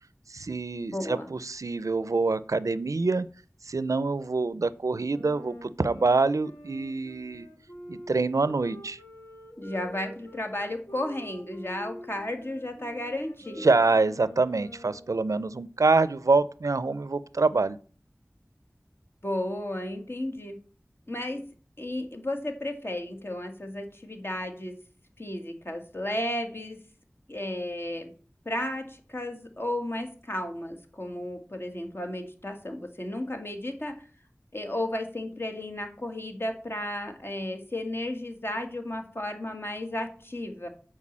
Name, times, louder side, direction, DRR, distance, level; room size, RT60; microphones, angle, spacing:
voice 1, 0.3-3.3 3.6-7.5 7.9-9.0 13.6-17.8, right 3 dB, 85° right, 17 dB, 0.5 m, -25 dB
voice 2, 0.9-1.3 9.6-13.7 19.2-20.6 21.1-21.4 21.8-24.7 25.2-26.8 27.3-28.1 28.5-34.0 34.5-40.7, left 1 dB, 45° left, 5 dB, 1.9 m, -33 dB
Wind instrument woodwind instrument, 5.1-15.1, equal, 60° left, 3.4 m, -46 dB
8.3 x 4.8 x 7.3 m, 0.41 s
wide cardioid pair, 40°, 5 cm